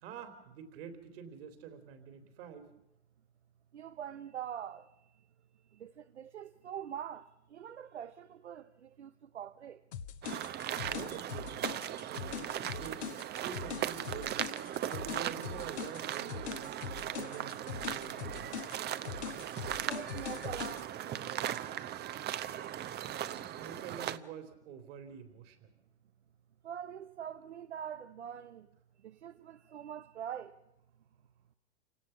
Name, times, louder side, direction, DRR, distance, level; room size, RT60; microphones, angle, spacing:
voice 1, 0.0-2.7 10.9-11.7 12.1-13.1 13.4-14.5 14.8-16.7 17.1-18.6 23.0-25.7, right 7 dB, 60° right, 3.7 m, -47 dB
voice 2, 3.7-4.9 5.8-9.8 19.8-21.8 26.6-28.7 29.0-30.5, right 9 dB, 80° right, 0.9 m, -44 dB
sound 1, 9.9-20.8, left 9 dB, 75° left, 1.4 m, -42 dB
sound 2, 10.2-24.2, right 11 dB, 30° right, 0.9 m, -38 dB
28.5 x 17.5 x 5.9 m
hypercardioid pair, 90°, 33 cm